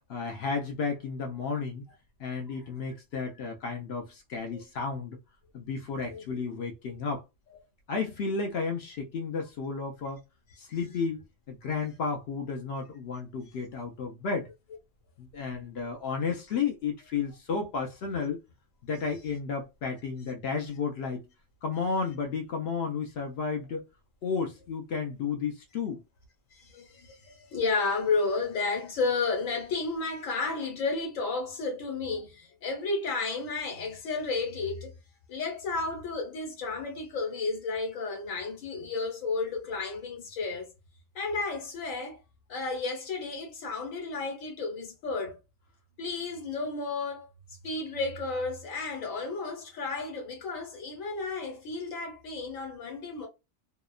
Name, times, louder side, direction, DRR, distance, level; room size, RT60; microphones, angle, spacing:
voice 1, 0.1-1.8 2.2-5.2 5.5-7.2 7.9-10.2 10.6-14.5 15.2-18.4 18.8-21.2 21.6-23.8 24.2-26.0, left 5 dB, 60° left, 0.7 m, -32 dB
voice 2, 26.5-34.9 35.3-40.7 41.1-42.2 42.5-45.4 46.0-47.3 47.6-53.3, left 3 dB, 90° left, 1.4 m, -32 dB
2.8 x 2.1 x 2.3 m
omnidirectional pair, 1.4 m